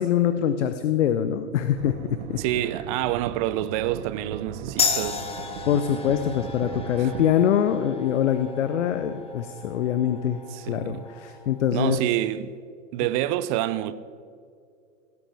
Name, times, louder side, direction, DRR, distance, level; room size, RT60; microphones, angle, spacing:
voice 1, 0.0-1.9 2.3-2.4 5.7-10.4 10.7-12.0, left 9 dB, 65° left, 0.7 m, -24 dB
sound 1, 1.7-7.3, right 9 dB, 55° right, 0.9 m, -38 dB
voice 2, 2.4-5.2 7.0-7.1 10.5-11.0 11.7-12.5 12.9-13.9, right 13 dB, 30° right, 0.4 m, -27 dB
sound 2, 4.8-11.9, left 6 dB, 15° left, 0.9 m, -33 dB
17.5 x 9.5 x 3.5 m
figure-of-eight pair, 100°, 40 cm